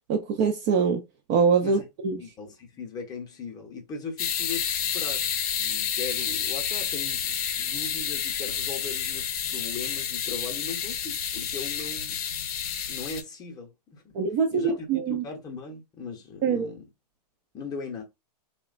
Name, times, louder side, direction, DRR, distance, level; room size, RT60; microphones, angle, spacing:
voice 1, 0.1-1.0 1.3-2.2 14.1-15.2 16.4-16.7, right 5 dB, 30° right, 0.3 m, -24 dB
voice 2, 2.2-5.3 5.6-12.2 12.9-14.0 14.3-16.8 17.5-18.0, left 4 dB, 20° left, 0.6 m, -39 dB
sound 1, 4.2-13.2, left 8 dB, 60° left, 0.6 m, -30 dB
2.8 x 2.1 x 2.4 m
hypercardioid pair, 135°, 21 cm